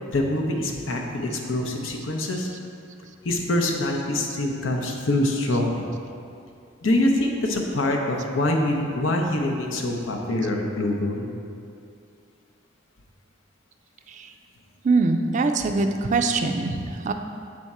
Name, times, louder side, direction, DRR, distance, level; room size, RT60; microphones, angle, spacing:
voice 1, 0.1-2.5 3.2-5.8 6.8-11.3, left 1 dB, 85° left, 1 dB, 0.7 m, -25 dB
voice 2, 14.8-17.1, right 3 dB, 40° right, 6 dB, 0.3 m, -23 dB
7.5 x 3.5 x 4.2 m, 2.5 s
head